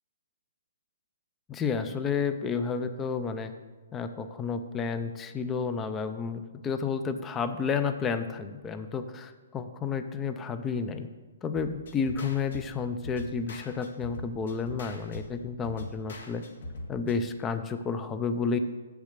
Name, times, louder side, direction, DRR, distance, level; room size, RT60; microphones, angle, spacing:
voice 1, 1.5-3.5 3.9-11.1 11.4-16.4 16.9-18.6, left 5 dB, 10° left, 10 dB, 0.4 m, -31 dB
sound 1, 11.5-17.2, left 1 dB, 65° left, 1.7 m, -42 dB
7.5 x 6.8 x 6.5 m, 1.3 s
hypercardioid pair, 170°, 0 cm